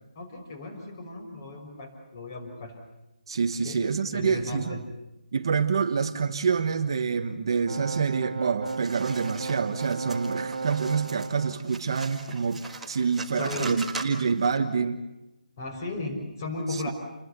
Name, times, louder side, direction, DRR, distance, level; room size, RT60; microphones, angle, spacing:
voice 1, 0.2-2.8 3.6-3.8 4.1-4.8 13.4-13.8 15.6-16.9, left 2 dB, 25° left, 5 dB, 5.6 m, -35 dB
voice 2, 3.3-4.8 5.3-15.0 16.7-16.9, right 5 dB, 35° right, 7 dB, 1.2 m, -27 dB
sound 1, 7.7-11.6, right 4 dB, 60° right, 1.9 m, -35 dB
sound 2, 8.7-14.6, right 3 dB, ahead, 1.7 m, -41 dB
29.0 x 21.5 x 8.2 m, 1.0 s
hypercardioid pair, 175°, 5 cm